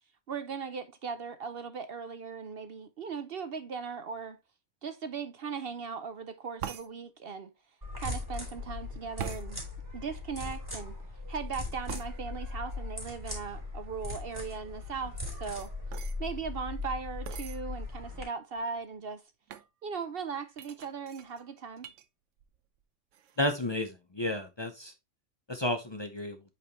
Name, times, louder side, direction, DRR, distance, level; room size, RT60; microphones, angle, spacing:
voice 1, 0.3-4.4 4.8-7.5 8.0-9.6 9.9-10.9 11.3-15.7 16.2-19.2 19.8-21.9, right 5 dB, 55° right, 0.8 m, -38 dB
sound 1, 6.6-6.9 9.2-9.5 11.9-12.1 15.2-16.2 17.3-17.6 18.3-18.4 18.6-19.0 19.5-19.7 20.6-22.1 22.4-22.8 23.1-23.6, right 9 dB, 85° right, 1.1 m, -42 dB
sound 2, 7.8-18.2, left 2 dB, 20° right, 3.2 m, -39 dB
voice 2, 23.4-24.9 25.5-26.4, left 1 dB, 25° left, 0.8 m, -32 dB
8.3 x 4.4 x 2.9 m
omnidirectional pair, 1.3 m